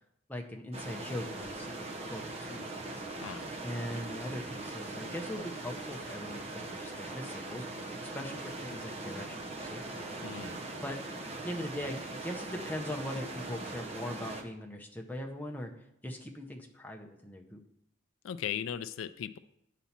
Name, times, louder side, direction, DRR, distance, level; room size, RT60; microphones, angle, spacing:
voice 1, 0.3-2.8 3.6-10.0 10.8-11.0 11.4-15.7 16.0-17.6, left 1 dB, 10° left, 1 dB, 0.6 m, -41 dB
sound 1, 0.7-14.4, right 2 dB, 30° right, 0.7 m, -41 dB
voice 2, 10.2-10.6 18.2-19.4, left 9 dB, 75° left, 13 dB, 0.3 m, -37 dB
8.2 x 4.1 x 5.8 m, 0.76 s
head